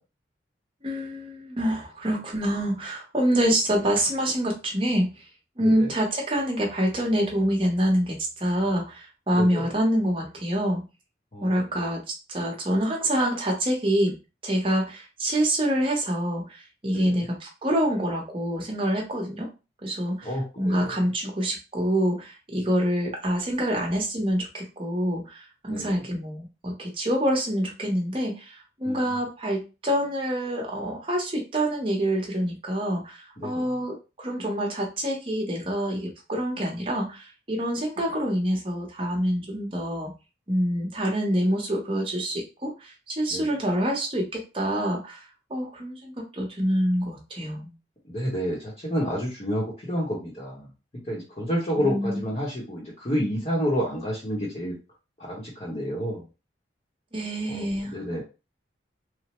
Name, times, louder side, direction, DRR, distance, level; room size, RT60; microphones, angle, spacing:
voice 1, 0.8-5.3 5.6-10.8 11.4-12.0 12.3-14.1 14.4-19.5 19.8-40.1 40.5-45.2 45.5-47.7 51.8-52.2 57.1-58.0, equal, 30° right, -1 dB, 0.9 m, -26 dB
voice 2, 9.3-9.7 11.3-11.6 16.9-17.2 20.2-21.0 25.7-26.0 28.9-29.0 33.4-33.6 43.3-43.5 48.1-50.7 51.1-54.7 55.3-56.2 57.5-57.7 57.9-58.2, equal, 35° left, -6 dB, 0.9 m, -29 dB
3.2 x 2.1 x 2.9 m, 0.30 s
head